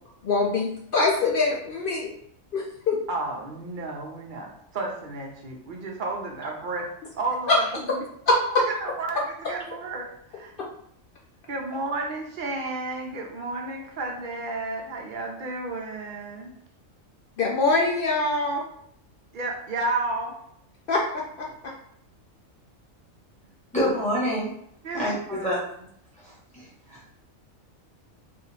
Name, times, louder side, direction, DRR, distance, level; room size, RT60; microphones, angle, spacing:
voice 1, 0.2-2.1 2.5-3.0 7.5-7.6 8.3-8.6 17.4-18.6 20.9-21.0, left 3 dB, 65° left, -2 dB, 0.5 m, -23 dB
voice 2, 3.1-6.9 7.2-8.0 8.8-10.5 11.5-16.5 19.3-20.3 24.8-25.5, right 2 dB, 50° right, 1 dB, 0.6 m, -32 dB
voice 3, 23.7-24.5 24.9-25.6 26.2-27.1, equal, 5° left, -6 dB, 1.0 m, -27 dB
2.7 x 2.5 x 4.0 m, 0.70 s
omnidirectional pair, 1.4 m